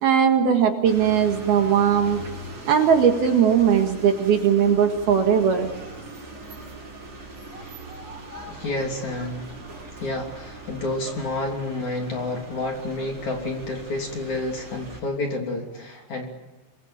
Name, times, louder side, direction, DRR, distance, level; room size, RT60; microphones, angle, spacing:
voice 1, 0.0-2.2 2.7-5.7, right 7 dB, 60° right, 4 dB, 3.4 m, -19 dB
sound 1, 0.9-15.0, right 2 dB, 35° right, 7.0 m, -40 dB
voice 2, 8.5-9.6 10.0-16.3, left 2 dB, 40° left, 2 dB, 4.1 m, -30 dB
26.5 x 21.0 x 8.9 m, 1.1 s
omnidirectional pair, 5.5 m